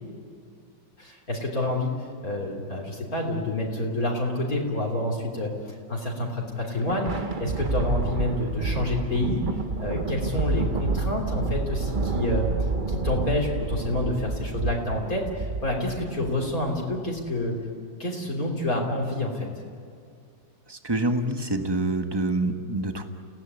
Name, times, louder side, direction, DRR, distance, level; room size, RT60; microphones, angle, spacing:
voice 1, 1.0-12.5 12.9-17.6 18.0-19.5, left 1 dB, 50° left, -1 dB, 3.8 m, -28 dB
Thunder, 6.5-17.2, right 3 dB, 35° right, 0.9 m, -29 dB
voice 2, 20.7-23.1, right 2 dB, 15° right, 6 dB, 1.4 m, -26 dB
29.5 x 17.5 x 9.6 m, 2.4 s
omnidirectional pair, 2.0 m